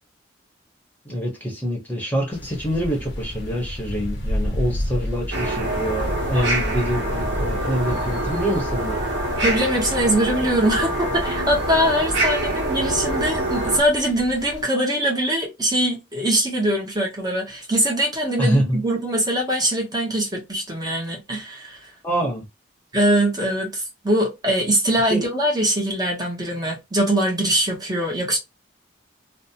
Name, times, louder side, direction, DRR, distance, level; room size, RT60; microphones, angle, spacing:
voice 1, 1.0-9.0 18.4-18.8 22.0-22.4 25.1-25.2, equal, 10° left, 0.8 m, -25 dB
sound 1, 2.3-14.6, equal, 80° left, 0.7 m, -32 dB
sound 2, 5.3-13.8, right 1 dB, 70° right, 0.9 m, -25 dB
voice 2, 9.4-21.9 22.9-28.4, right 1 dB, 20° right, 0.8 m, -22 dB
2.5 x 2.0 x 2.8 m
head